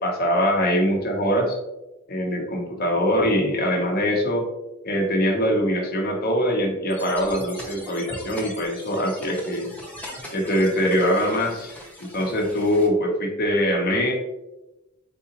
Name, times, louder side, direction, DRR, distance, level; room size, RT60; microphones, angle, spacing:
voice 1, 0.0-1.6 2.1-4.4 4.8-9.7 10.3-11.7 12.1-14.1, equal, 45° left, 1 dB, 0.9 m, -23 dB
sound 1, 6.9-12.9, left 1 dB, 5° left, 0.7 m, -40 dB
4.1 x 3.8 x 2.9 m, 0.99 s
head